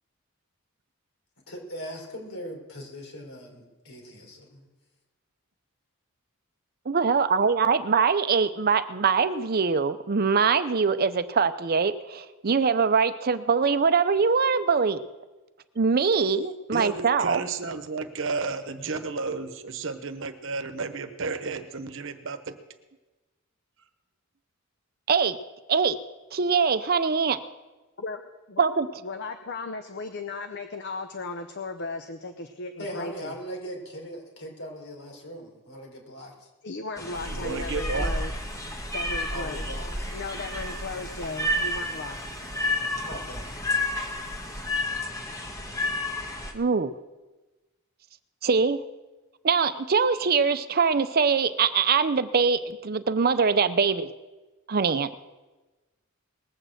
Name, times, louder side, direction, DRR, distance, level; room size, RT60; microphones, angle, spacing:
voice 1, 1.5-4.7 32.8-36.5 39.3-40.1 43.1-43.6, equal, 70° left, 1 dB, 4.1 m, -40 dB
voice 2, 6.9-15.0 15.8-17.4 25.1-25.4 25.7-26.0 26.3-27.4 28.6-28.9 46.5-46.9 48.4-48.8 49.4-54.1 54.7-55.1, right 5 dB, 45° right, 12 dB, 0.6 m, -23 dB
voice 3, 16.7-22.6 37.2-38.1, right 4 dB, 60° right, 9 dB, 1.0 m, -32 dB
voice 4, 29.0-33.4 36.6-38.3 38.9-39.7 40.1-42.2, left 3 dB, 50° left, 7 dB, 0.7 m, -36 dB
sound 1, 37.0-46.5, left 1 dB, 15° left, 1.5 m, -31 dB
sound 2, 37.1-44.8, equal, 15° right, 1.5 m, -39 dB
20.0 x 6.6 x 7.8 m, 1.2 s
head